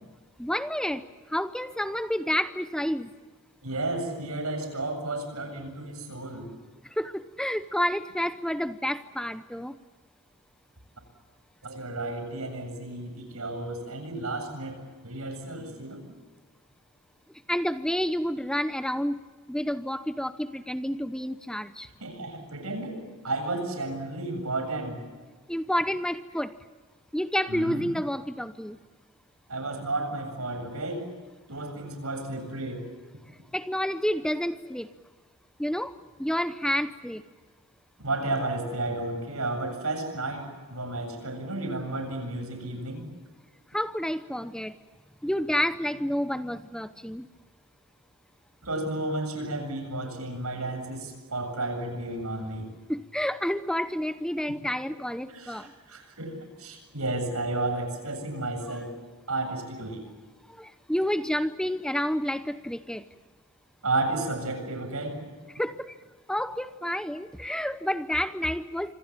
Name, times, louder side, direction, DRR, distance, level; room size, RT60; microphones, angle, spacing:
voice 1, 0.4-1.0 1.3-3.1 7.0-9.8 17.5-19.2 19.5-21.9 25.5-26.5 27.1-28.8 33.5-34.9 35.6-37.2 43.7-44.7 45.2-47.3 52.9-55.7 60.6-63.0 65.6-65.9 66.3-68.9, equal, 5° left, 11 dB, 0.8 m, -29 dB
voice 2, 3.6-6.5 11.6-16.0 22.0-25.0 27.5-27.9 29.5-31.1 31.5-32.8 38.0-43.1 48.6-52.7 55.3-58.9 59.3-60.0 63.8-65.2, right 2 dB, 85° right, 6 dB, 7.5 m, -32 dB
27.0 x 26.0 x 7.4 m, 1.4 s
head